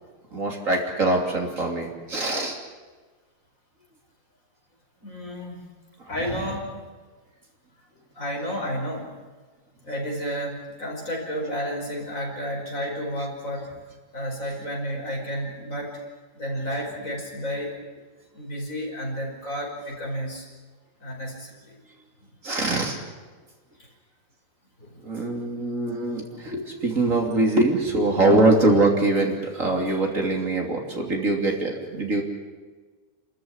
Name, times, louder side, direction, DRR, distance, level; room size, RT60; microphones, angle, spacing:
voice 1, 0.3-2.6 22.4-23.0 25.0-32.2, right 2 dB, 50° right, 1 dB, 3.4 m, -23 dB
voice 2, 5.0-5.7 6.1-6.7 8.1-9.1 9.8-13.7 14.1-16.0 16.3-17.7 18.3-20.5 21.0-21.8 24.8-25.0 25.4-25.5, equal, 50° left, 0 dB, 5.7 m, -31 dB
28.5 x 14.0 x 9.7 m, 1.4 s
omnidirectional pair, 1.8 m